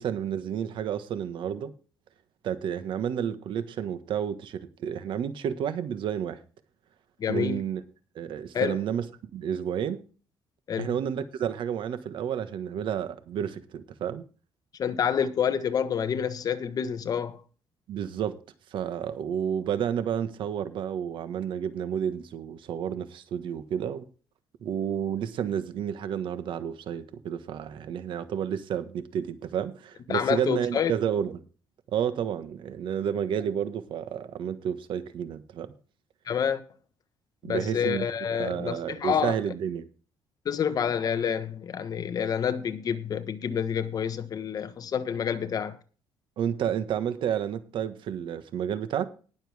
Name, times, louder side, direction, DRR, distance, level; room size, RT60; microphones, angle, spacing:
voice 1, 0.0-1.7 2.4-6.4 7.3-7.8 8.1-9.0 9.3-10.0 10.8-14.2 17.9-18.4 18.7-24.1 24.6-31.4 31.9-35.7 37.4-39.9 46.4-49.1, right 9 dB, 65° right, 1.5 m, -31 dB
voice 2, 7.2-7.6 8.5-8.8 10.7-10.9 14.8-17.4 30.1-30.9 36.3-36.6 37.4-39.3 40.4-45.8, left 7 dB, 45° left, 1.3 m, -28 dB
19.5 x 7.2 x 3.5 m
cardioid pair, 150°, 9 cm